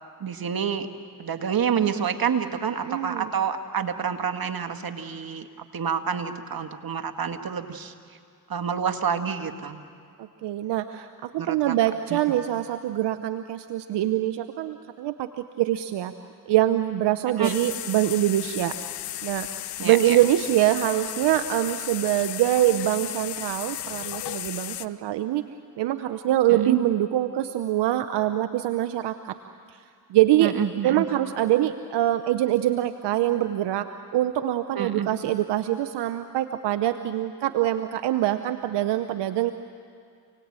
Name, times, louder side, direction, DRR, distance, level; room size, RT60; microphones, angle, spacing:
voice 1, 0.2-0.9 1.2-5.5 5.7-7.9 8.5-9.8 11.4-11.8 12.1-12.2 17.4-17.5 19.8-20.2 26.6-26.8 30.4-31.1 34.8-35.1, right 7 dB, 60° right, 7 dB, 1.8 m, -28 dB
voice 2, 2.8-3.3 10.2-16.1 16.5-19.5 19.8-25.5 25.8-29.4 29.7-29.8 30.1-30.5 30.8-33.9 34.1-39.5, right 13 dB, 85° right, 9 dB, 0.7 m, -24 dB
sound 1, 17.4-24.9, left 13 dB, 80° left, 0.7 m, -34 dB
28.5 x 19.0 x 8.9 m, 2.3 s
supercardioid pair, 40°, 40 cm